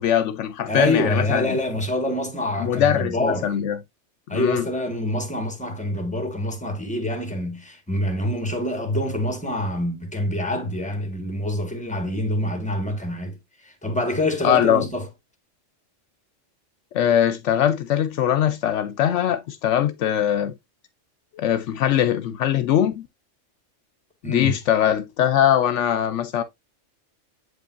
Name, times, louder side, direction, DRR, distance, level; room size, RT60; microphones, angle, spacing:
voice 1, 0.0-1.6 2.6-3.8 4.3-4.7 14.4-14.9 16.9-20.5 21.4-23.1 24.2-26.4, left 10 dB, 75° left, 0.9 m, -21 dB
voice 2, 0.7-3.5 4.3-13.4 13.6-15.1 24.2-24.5, left 1 dB, 5° left, 1.6 m, -26 dB
7.8 x 5.3 x 2.5 m
omnidirectional pair, 1.3 m